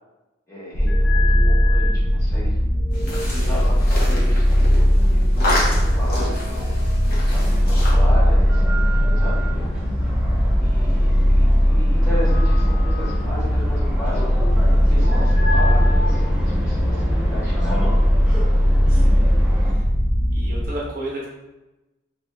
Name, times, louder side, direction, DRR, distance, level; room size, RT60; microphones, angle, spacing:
voice 1, 0.5-2.6 3.3-6.7 7.3-9.7 10.6-14.3 14.9-18.0, left 1 dB, 15° left, -9 dB, 1.1 m, -35 dB
sound 1, 0.7-20.7, equal, 85° left, 0.7 m, -18 dB
sound 2, 2.9-7.9, left 1 dB, 50° left, 0.9 m, -29 dB
sound 3, 7.3-19.7, equal, 5° right, 0.5 m, -30 dB
voice 2, 18.9-19.8 20.3-21.3, right 1 dB, 45° right, -4 dB, 0.7 m, -33 dB
3.5 x 2.7 x 2.2 m, 1.1 s
head